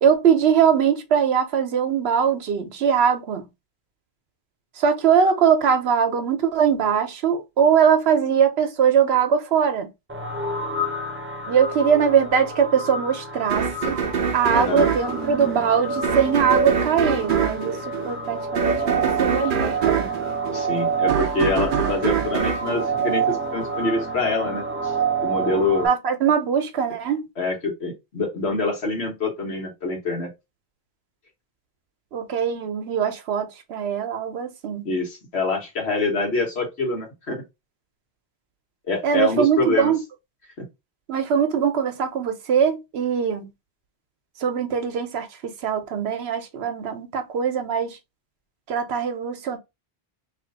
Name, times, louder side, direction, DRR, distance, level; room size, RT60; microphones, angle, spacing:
voice 1, 0.0-3.5 4.8-9.9 11.5-14.0 14.3-17.8 18.0-20.1 25.8-27.3 32.1-34.9 39.0-40.0 41.1-43.5 44.4-48.0 48.7-49.6, right 7 dB, 80° right, 1.0 m, -21 dB
sound 1, 10.1-25.9, right 4 dB, 15° right, 0.6 m, -28 dB
sound 2, 13.5-23.7, right 7 dB, 60° right, 0.7 m, -25 dB
voice 2, 14.5-14.9 20.5-24.9 25.2-25.9 27.4-30.3 34.8-37.4 38.9-39.9, left 3 dB, 90° left, 1.5 m, -25 dB
3.0 x 2.5 x 3.8 m
omnidirectional pair, 1.1 m